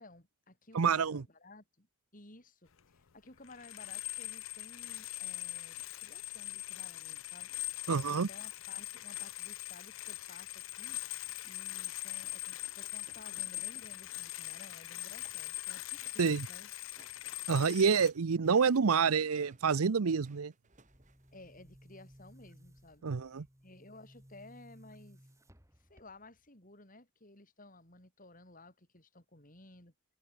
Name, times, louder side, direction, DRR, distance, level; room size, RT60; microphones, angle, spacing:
voice 1, 0.0-1.9 2.1-7.5 8.1-16.7 21.3-23.1 23.6-25.2 25.8-29.9, left 2 dB, 40° left, 5.4 m, -56 dB
voice 2, 0.7-1.2 7.9-8.3 16.2-16.5 17.5-20.5 23.0-23.4, right 5 dB, 85° right, 0.6 m, -28 dB
sound 1, 2.8-2.9 3.3-18.1, left 18 dB, 65° left, 0.7 m, -42 dB
sound 2, 12.2-14.0 14.3-14.8 15.1-15.4 15.8-16.3 16.7-21.4, right 3 dB, 35° right, 3.7 m, -63 dB
Boom, 20.7-26.5, equal, 15° right, 5.5 m, -60 dB
head